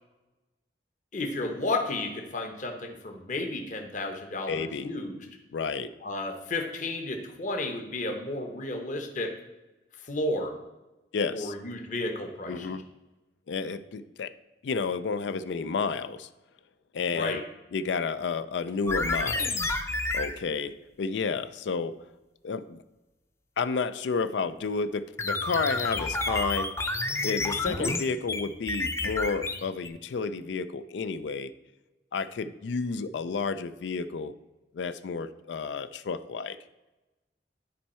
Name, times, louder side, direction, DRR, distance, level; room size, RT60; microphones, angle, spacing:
voice 1, 1.1-5.3 6.0-9.3 10.0-10.5 11.3-12.8 17.1-17.4, left 2 dB, 45° left, 4 dB, 0.9 m, -32 dB
voice 2, 4.5-4.9 5.5-5.9 11.1-11.5 12.5-12.8 13.5-14.3 14.6-16.3 16.9-17.4 17.7-19.5 20.1-22.0 22.4-22.8 23.6-26.7 27.2-31.5 32.1-34.3 34.7-36.6, left 5 dB, 85° left, 12 dB, 0.4 m, -31 dB
sound 1, 18.9-20.3 25.2-29.9, left 2 dB, 15° left, 0.5 m, -29 dB
10.0 x 4.6 x 4.3 m, 1.1 s
head